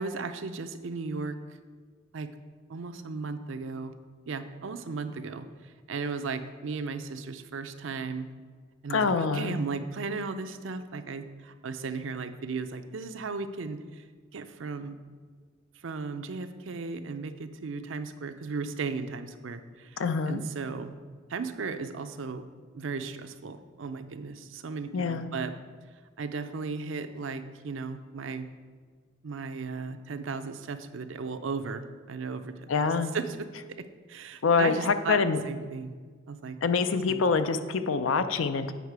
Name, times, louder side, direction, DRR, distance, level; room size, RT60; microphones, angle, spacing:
voice 1, 0.0-1.4 2.1-2.3 2.7-3.9 4.3-8.3 8.8-14.0 14.3-15.0 15.8-21.0 21.3-22.4 22.7-25.5 26.2-28.5 29.2-33.5 33.8-35.2 35.4-35.9 36.3-36.6 37.1-37.2, right 4 dB, 65° right, 9 dB, 0.5 m, -36 dB
voice 2, 8.9-9.6 20.0-20.4 24.9-25.3 32.7-33.1 34.4-35.4 36.6-38.7, left 5 dB, 70° left, 10 dB, 0.5 m, -25 dB
8.1 x 5.7 x 4.7 m, 1.6 s
head